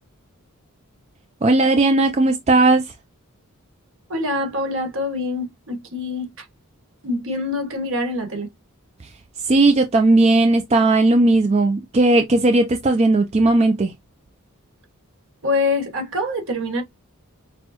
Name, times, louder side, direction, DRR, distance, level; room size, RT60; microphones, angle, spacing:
voice 1, 1.4-2.8 9.4-13.9, right 2 dB, 30° right, 0.4 m, -16 dB
voice 2, 4.1-6.3 7.0-8.5 15.4-16.8, left 2 dB, 60° right, 1.5 m, -25 dB
6.1 x 2.2 x 2.8 m
head